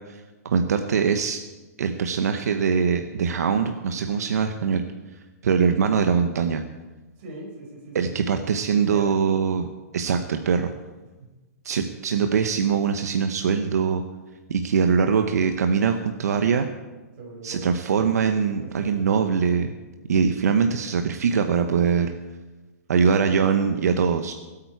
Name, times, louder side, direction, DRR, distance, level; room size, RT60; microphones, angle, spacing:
voice 1, 0.1-1.4 1.8-4.8 5.4-6.6 7.9-9.7 9.9-10.7 11.6-14.0 14.5-16.7 17.4-19.7 20.1-22.1 22.9-24.3, right 6 dB, 75° right, 6 dB, 0.9 m, -22 dB
voice 2, 7.2-8.2 8.7-9.2 11.2-11.3 17.2-17.7 18.5-19.0 23.1-23.9, right 2 dB, 35° right, -2 dB, 5.0 m, -41 dB
20.0 x 8.8 x 4.7 m, 1.2 s
hypercardioid pair, 175°, 9 cm